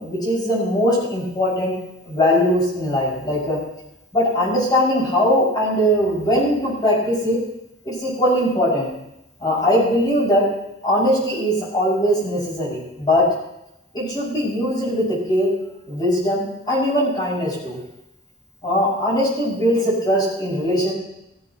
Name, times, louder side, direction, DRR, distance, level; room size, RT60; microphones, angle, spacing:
voice 1, 0.0-1.7 2.0-3.6 4.1-7.4 7.8-8.9 9.4-10.5 10.8-13.2 13.9-15.5 15.9-17.8 18.6-20.9, equal, 25° left, -6 dB, 6.2 m, -20 dB
16.5 x 15.5 x 3.0 m, 0.85 s
head